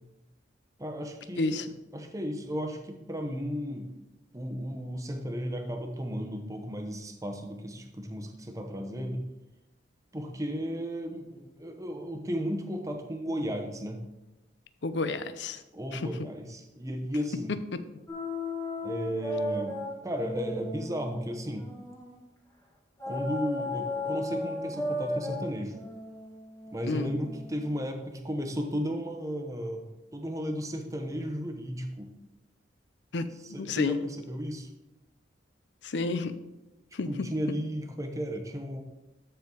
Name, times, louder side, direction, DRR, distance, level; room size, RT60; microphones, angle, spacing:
voice 1, 0.8-1.7 1.9-3.9 4.3-9.2 10.1-14.0 15.7-17.5 18.8-21.7 23.1-25.8 26.7-29.9 30.1-32.1 33.4-34.7 37.1-38.8, equal, 20° right, 4 dB, 0.8 m, -34 dB
voice 2, 14.8-15.6 15.9-16.0 26.9-27.1 33.1-33.3 33.6-34.0 35.8-36.3 36.9-37.1, left 3 dB, 70° left, 12 dB, 0.6 m, -30 dB
sound 1, 18.1-22.2 23.0-27.8, left 1 dB, 15° left, 1.3 m, -35 dB
13.0 x 4.5 x 3.8 m, 1.0 s
head